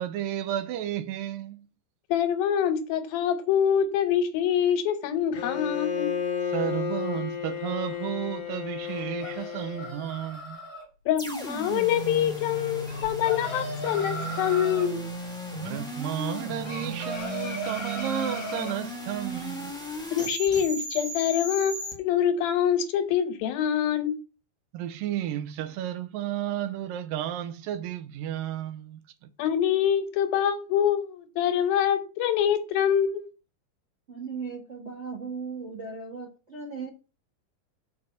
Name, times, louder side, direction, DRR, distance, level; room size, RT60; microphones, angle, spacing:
voice 1, 0.0-1.7 6.5-10.6 15.6-19.7 24.7-29.3, right 11 dB, 80° right, 2.4 m, -32 dB
voice 2, 2.1-6.1 11.1-15.0 20.1-24.2 29.4-33.3, left 9 dB, 90° left, 2.9 m, -25 dB
Bowed string instrument, 5.3-10.1, left 8 dB, 60° left, 2.1 m, -32 dB
sound 1, 8.8-10.8 12.9-14.9 16.6-18.8, right 1 dB, 25° left, 3.0 m, -37 dB
sound 2, 11.2-21.9, equal, 5° left, 0.7 m, -35 dB
voice 3, 34.1-36.9, right 5 dB, 60° right, 0.7 m, -37 dB
7.3 x 4.6 x 6.3 m
omnidirectional pair, 4.1 m